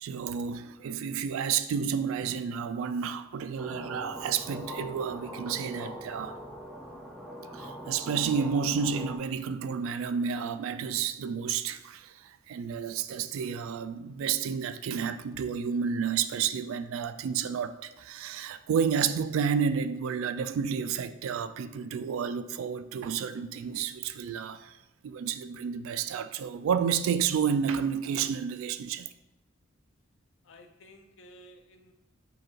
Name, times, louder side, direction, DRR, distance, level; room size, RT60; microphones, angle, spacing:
voice 1, 0.0-6.4 7.5-24.8 25.0-29.1, right 7 dB, 85° right, 0.3 m, -31 dB
sound 1, 3.6-9.2, equal, ahead, 0.4 m, -42 dB
voice 2, 30.4-31.9, equal, 70° left, 0.5 m, -53 dB
4.9 x 2.4 x 4.5 m
head